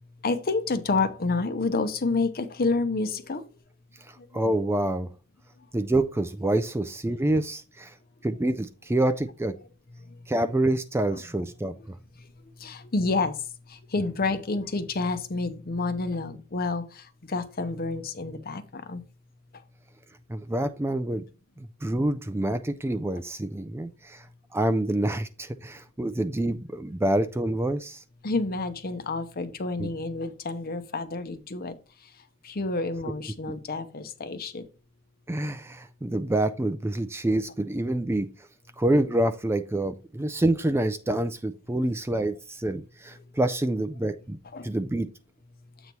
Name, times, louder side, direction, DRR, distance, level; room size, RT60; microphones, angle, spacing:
voice 1, 0.2-3.4 4.2-4.3 11.1-11.2 12.6-13.4 13.7-19.0 28.2-31.7 32.4-34.6 44.5-44.7, left 3 dB, 45° left, 0.8 m, -29 dB
voice 2, 4.1-5.1 5.7-7.9 8.2-9.5 10.3-12.0 20.3-21.2 21.6-24.2 24.5-28.0 29.8-29.9 35.3-38.3 38.8-44.4 44.6-45.1, right 1 dB, 10° right, 0.4 m, -27 dB
8.0 x 3.0 x 5.4 m
head